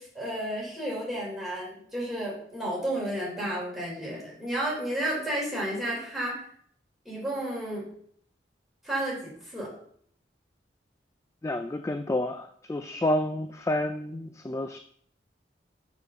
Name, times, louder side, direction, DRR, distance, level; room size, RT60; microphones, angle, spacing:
voice 1, 0.0-6.4 7.1-7.9 8.8-9.7, right 1 dB, ahead, -6 dB, 3.5 m, -32 dB
voice 2, 11.4-14.8, left 1 dB, 15° left, 7 dB, 0.3 m, -29 dB
6.5 x 5.1 x 6.4 m, 0.64 s
head